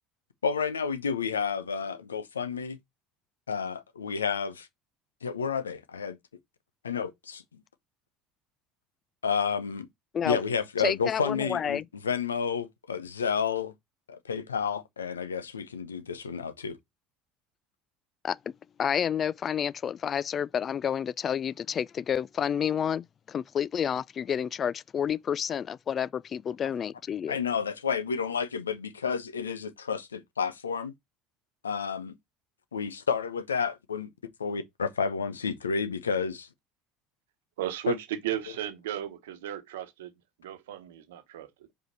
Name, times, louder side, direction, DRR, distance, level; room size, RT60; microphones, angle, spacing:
voice 1, 0.4-2.8 3.5-4.7 5.2-6.2 6.8-7.4 9.2-9.9 10.2-13.7 14.1-16.8 27.3-30.9 31.6-32.1 32.7-34.1 34.4-36.5 37.9-38.0, left 6 dB, 85° left, 0.8 m, -30 dB
voice 2, 10.8-11.8 18.2-18.5 18.8-27.4, left 8 dB, 40° left, 0.3 m, -30 dB
voice 3, 37.6-40.1 40.4-41.5, right 12 dB, 75° right, 1.1 m, -35 dB
5.1 x 4.9 x 4.0 m
hypercardioid pair, 70°, 0 cm